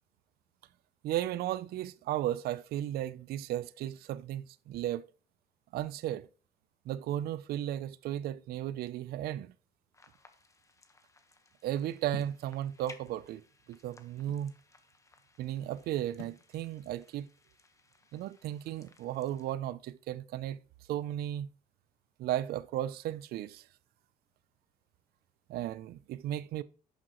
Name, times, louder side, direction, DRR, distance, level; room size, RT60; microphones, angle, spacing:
voice 1, 1.0-5.0 5.7-6.3 6.9-9.5 11.6-13.4 13.7-14.5 15.4-17.3 18.1-20.6 20.9-21.5 22.2-23.7 25.5-26.6, right 12 dB, 65° right, 0.4 m, -35 dB
sound 1, 9.9-19.5, left 3 dB, 20° left, 1.1 m, -60 dB
sound 2, 12.1-12.5 13.3-14.5 16.2-16.5, left 9 dB, 75° left, 1.4 m, -47 dB
11.0 x 6.2 x 3.0 m
cardioid pair, 110°, 17 cm